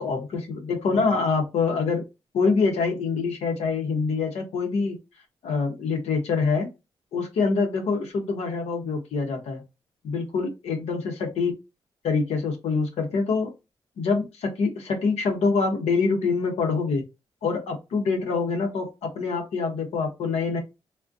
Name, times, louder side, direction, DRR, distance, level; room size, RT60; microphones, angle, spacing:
voice 1, 0.0-2.0 2.3-5.0 5.4-6.7 7.1-9.6 10.0-11.5 12.0-13.5 14.0-17.0 17.4-20.6, left 4 dB, 80° left, 2 dB, 0.7 m, -25 dB
2.4 x 2.1 x 2.4 m, 0.25 s
cardioid pair, 60°, 11 cm